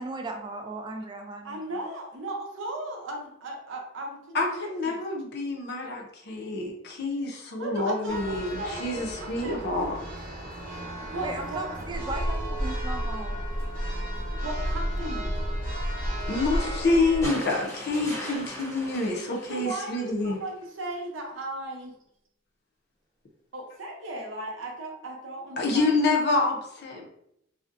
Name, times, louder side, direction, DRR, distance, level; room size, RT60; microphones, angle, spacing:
voice 1, 0.0-1.8 11.2-13.4, right 2 dB, 25° right, 4 dB, 0.3 m, -36 dB
voice 2, 1.4-5.0 7.6-9.9 11.1-11.6 14.4-15.4 19.5-21.9 23.5-26.0, right 2 dB, 80° right, 0 dB, 0.6 m, -37 dB
voice 3, 4.3-9.9 16.3-20.4 25.6-27.0, left 2 dB, 60° left, 1 dB, 0.5 m, -27 dB
Church bell, 8.1-17.3, equal, 50° right, 0.7 m, -32 dB
sound 1, 17.2-20.5 21.8-21.9, equal, 15° left, 0.6 m, -39 dB
2.5 x 2.0 x 2.4 m, 0.77 s
head